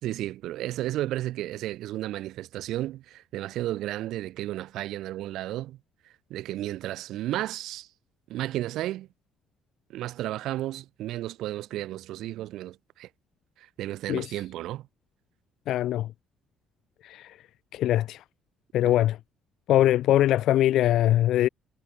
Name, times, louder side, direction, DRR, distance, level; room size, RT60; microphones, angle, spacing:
voice 1, 0.0-5.8 6.3-7.9 8.3-9.1 9.9-13.1 13.6-14.9 18.8-18.9, right 14 dB, 70° right, 5.5 m, -33 dB
voice 2, 15.7-16.1 17.0-17.4 17.7-18.2 18.7-19.2 19.7-21.5, left 13 dB, 60° left, 2.6 m, -22 dB
cardioid pair, 175°, 0 cm